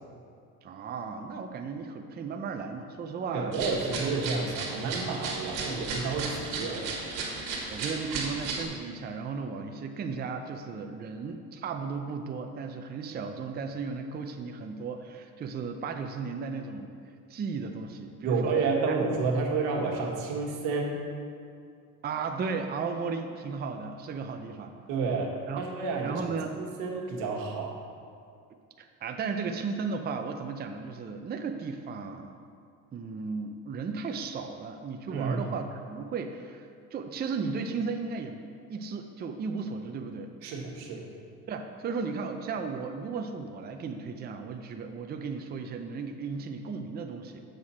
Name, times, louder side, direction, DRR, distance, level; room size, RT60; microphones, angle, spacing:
voice 1, 0.6-3.6 7.7-16.9 17.3-18.6 18.9-19.0 22.0-24.8 25.5-25.7 26.0-26.5 28.8-32.4 32.9-40.3 41.5-47.4, right 5 dB, 30° right, 5 dB, 0.5 m, -35 dB
voice 2, 3.3-6.9 18.2-21.0 24.9-27.8 35.1-35.5 40.4-41.1, right 4 dB, 90° right, 0 dB, 1.5 m, -30 dB
sound 1, 3.5-8.7, right 4 dB, 70° right, 1.7 m, -35 dB
7.8 x 6.5 x 4.2 m, 2.3 s
cardioid pair, 115°, 34 cm